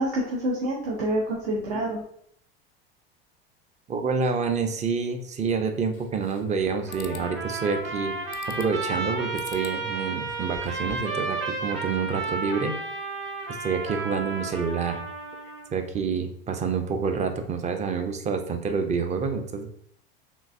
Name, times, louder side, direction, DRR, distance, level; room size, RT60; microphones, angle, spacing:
voice 1, 0.0-2.0, right 1 dB, 65° right, -2 dB, 0.8 m, -27 dB
voice 2, 3.9-8.1 8.4-12.8 13.6-15.0 15.7-19.7, right 5 dB, 25° right, 6 dB, 0.5 m, -28 dB
sound 1, 5.9-6.6 6.9-7.3 8.3-8.8 9.4-9.8 10.2-11.2, left 10 dB, 55° left, 0.4 m, -45 dB
Trumpet, 6.9-15.7, right 3 dB, 40° right, 1.3 m, -33 dB
3.7 x 2.6 x 2.5 m, 0.67 s
hypercardioid pair, 85°, 29 cm